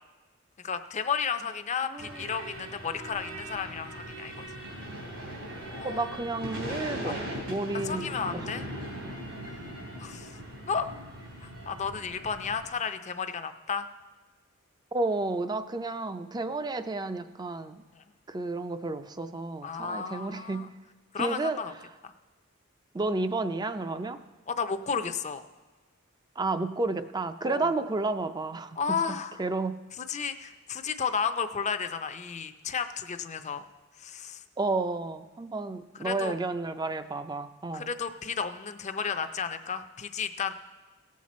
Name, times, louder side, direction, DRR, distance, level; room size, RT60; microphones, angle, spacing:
voice 1, 0.6-4.5 5.7-6.1 7.1-7.2 7.7-8.6 10.0-10.3 10.7-10.9 11.4-13.9 19.6-20.7 21.1-21.7 22.0-22.1 24.5-25.4 27.4-27.7 28.8-29.4 30.0-33.6 34.0-34.4 36.0-36.4 37.7-40.5, left 6 dB, 35° left, 9 dB, 0.5 m, -33 dB
voice 2, 1.8-2.3 5.8-8.0 8.3-8.4 14.9-17.8 18.3-20.6 21.2-21.6 22.9-24.2 26.4-28.8 29.1-29.7 34.6-37.9, right 3 dB, 20° right, 10 dB, 0.4 m, -31 dB
sound 1, 2.0-12.7, equal, 80° right, 3.3 m, -39 dB
17.5 x 7.5 x 4.2 m, 1.3 s
head